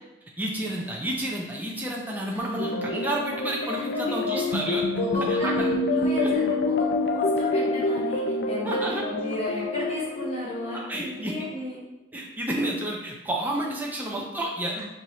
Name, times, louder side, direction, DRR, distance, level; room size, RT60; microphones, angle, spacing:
voice 1, 0.4-4.8 5.3-5.7 6.2-6.3 8.6-9.0 10.7-11.3 12.1-14.8, right 1 dB, 10° right, -3 dB, 0.5 m, -30 dB
voice 2, 2.3-2.9 3.7-4.6 4.9-11.8 14.7-14.8, left 1 dB, 35° left, -7 dB, 1.1 m, -34 dB
sound 1, 2.6-11.2, left 2 dB, 80° left, 0.4 m, -27 dB
4.8 x 2.8 x 2.8 m, 1.0 s
head